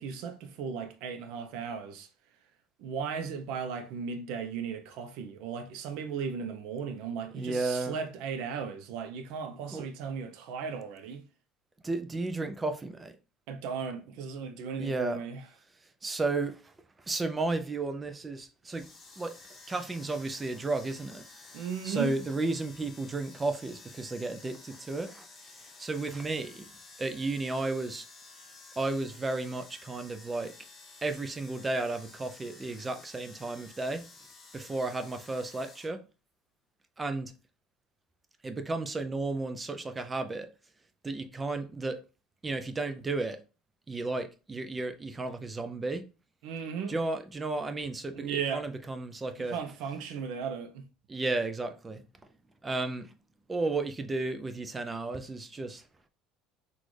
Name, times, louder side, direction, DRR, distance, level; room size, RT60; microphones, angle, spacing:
voice 1, 0.0-2.1 2.8-11.2 13.5-15.4 21.5-22.1 46.4-46.9 48.1-48.7 49.4-50.8, right 6 dB, 60° right, 0.7 m, -36 dB
voice 2, 7.3-8.0 9.7-9.8 11.8-13.1 14.8-15.2 16.0-16.6 17.1-18.9 19.2-19.3 19.7-21.2 21.8-25.3 25.8-26.7 27.0-28.1 28.8-30.5 31.0-34.0 34.5-36.0 37.0-37.3 38.4-40.5 41.0-42.0 42.4-43.4 43.9-46.1 46.9-49.6 51.1-52.0 52.6-53.1 53.5-55.8, right 3 dB, 10° right, 0.4 m, -33 dB
sound 1, 18.7-35.9, left 3 dB, 15° left, 0.8 m, -52 dB
6.1 x 2.5 x 3.1 m
cardioid pair, 180°, 0 cm